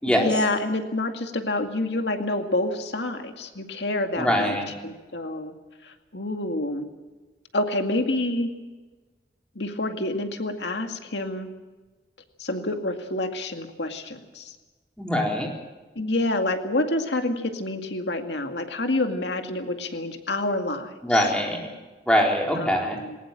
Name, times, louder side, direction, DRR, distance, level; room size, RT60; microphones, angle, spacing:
voice 1, 0.1-4.6 4.8-5.5 5.8-6.9 7.5-8.5 9.6-11.5 12.4-14.6 16.0-21.3 22.6-23.2, left 2 dB, 90° left, 6 dB, 2.2 m, -28 dB
voice 2, 4.2-4.7 15.0-15.5 21.0-21.7 22.1-23.0, equal, 5° left, 0 dB, 4.0 m, -22 dB
21.0 x 19.0 x 7.5 m, 1.2 s
head